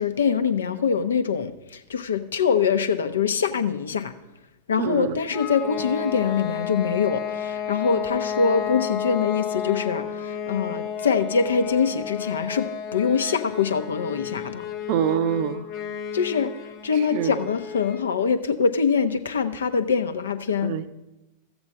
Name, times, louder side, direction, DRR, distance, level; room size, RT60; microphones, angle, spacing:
voice 1, 0.0-4.1 4.7-14.6 16.1-16.5 16.8-20.7, left 6 dB, 70° left, 0.8 m, -24 dB
voice 2, 4.8-5.2 14.9-15.7 16.9-17.4 20.6-20.9, right 9 dB, 45° right, 0.6 m, -25 dB
sound 1, 5.3-18.1, left 8 dB, 35° left, 1.0 m, -32 dB
13.5 x 7.9 x 5.4 m
figure-of-eight pair, 90°, 0 cm